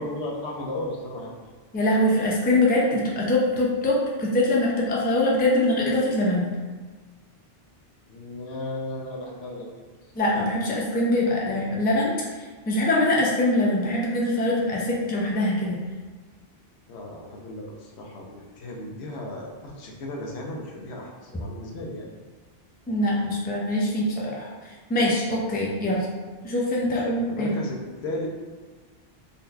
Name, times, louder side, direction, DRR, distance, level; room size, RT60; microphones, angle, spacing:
voice 1, 0.0-1.3 8.1-9.7 16.9-22.1 26.8-28.4, left 1 dB, 85° left, -1 dB, 0.9 m, -35 dB
voice 2, 1.7-6.5 10.2-12.1 12.7-15.8 22.9-24.5 24.9-26.1 26.4-27.6, left 1 dB, 15° left, -4 dB, 0.3 m, -23 dB
3.9 x 2.8 x 2.2 m, 1.4 s
omnidirectional pair, 1.1 m